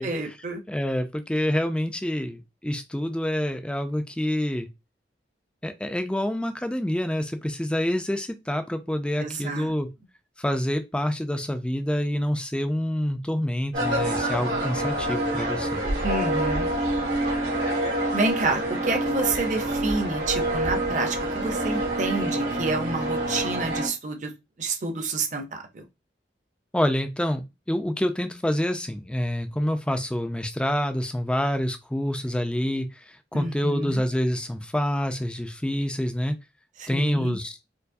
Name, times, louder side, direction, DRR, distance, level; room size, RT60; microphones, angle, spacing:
voice 1, 0.0-0.6 9.2-9.7 16.0-16.7 18.1-24.3 24.6-25.9 33.3-34.0 36.8-37.4, right 3 dB, 45° right, 0.6 m, -29 dB
voice 2, 0.7-4.7 5.6-9.9 10.4-15.8 26.7-32.9 33.3-36.3 36.9-37.5, equal, 5° left, 0.3 m, -27 dB
sound 1, 13.7-23.9, right 1 dB, 90° right, 1.6 m, -27 dB
4.5 x 2.0 x 2.6 m
head